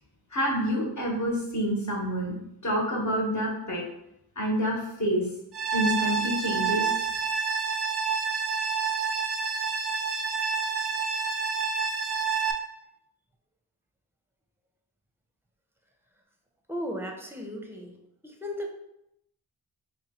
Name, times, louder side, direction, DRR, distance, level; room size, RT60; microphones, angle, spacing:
voice 1, 0.3-2.3 2.6-3.8 4.4-5.3 5.7-6.9, equal, 45° left, -2 dB, 1.1 m, -27 dB
sound 1, 5.5-12.5, right 5 dB, 85° right, 0.5 m, -28 dB
voice 2, 16.7-18.0 18.2-18.7, equal, 5° right, 2 dB, 0.6 m, -35 dB
3.0 x 2.3 x 4.2 m, 0.82 s
wide cardioid pair, 50°, 39 cm